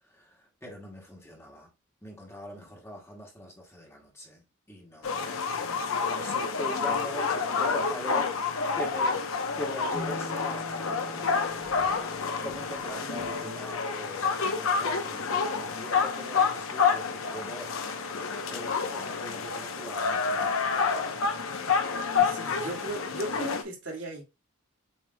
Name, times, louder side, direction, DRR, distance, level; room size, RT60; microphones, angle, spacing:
voice 1, 0.1-1.7 2.0-11.6 12.4-15.3 15.6-18.0 18.5-20.5, equal, 10° left, 1.1 m, -42 dB
sound 1, 5.0-23.6, left 5 dB, 90° left, 0.8 m, -29 dB
sound 2, 9.9-13.7, left 1 dB, 50° left, 1.5 m, -43 dB
voice 2, 22.2-24.2, right 1 dB, 65° right, 1.8 m, -37 dB
7.4 x 3.2 x 2.2 m
head